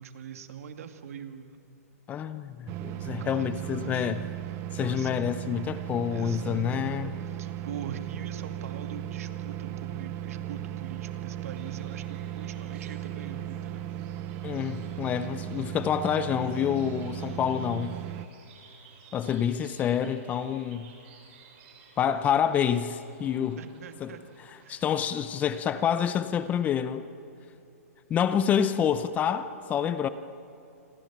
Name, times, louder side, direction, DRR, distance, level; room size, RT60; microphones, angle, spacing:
voice 1, 0.0-1.6 3.0-4.1 4.8-5.3 6.1-13.8 23.6-24.2 24.6-24.8, right 7 dB, 65° right, 7 dB, 2.2 m, -43 dB
voice 2, 2.1-4.2 4.7-7.1 14.4-18.0 19.1-20.9 22.0-23.6 24.0-24.1 24.7-27.1 28.1-30.1, left 8 dB, 20° left, 12 dB, 0.7 m, -27 dB
sound 1, 2.7-18.3, right 12 dB, 30° right, 0.8 m, -36 dB
sound 2, 11.5-25.7, right 5 dB, 45° right, 6.0 m, -56 dB
28.0 x 26.5 x 6.1 m, 2.8 s
hypercardioid pair, 150°, 8 cm